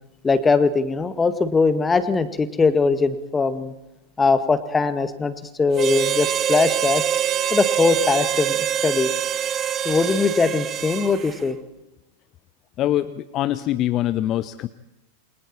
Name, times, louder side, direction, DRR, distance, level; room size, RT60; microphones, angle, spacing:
voice 1, 0.2-3.7 4.2-7.0 7.5-9.1 9.9-11.6, left 4 dB, 15° left, 11 dB, 1.8 m, -21 dB
Harmonica, 5.7-11.4, right 9 dB, 30° right, 1.5 m, -24 dB
voice 2, 12.8-14.7, left 13 dB, 35° left, 13 dB, 0.9 m, -23 dB
28.5 x 23.5 x 4.4 m, 0.96 s
figure-of-eight pair, 90°, 0 cm